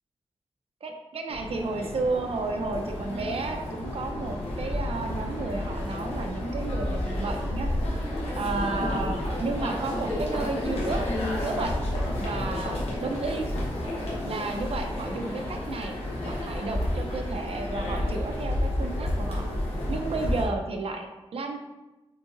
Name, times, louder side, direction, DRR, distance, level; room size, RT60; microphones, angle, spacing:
voice 1, 0.8-7.7 8.4-11.1 11.4-11.7 12.2-13.5 14.2-16.0 16.2-19.4 19.9-21.6, right 3 dB, 65° right, 3 dB, 0.5 m, -32 dB
sound 1, 1.3-20.5, left 1 dB, 75° left, 1.0 m, -31 dB
3.8 x 3.8 x 2.5 m, 1.0 s
wide cardioid pair, 80°, 10 cm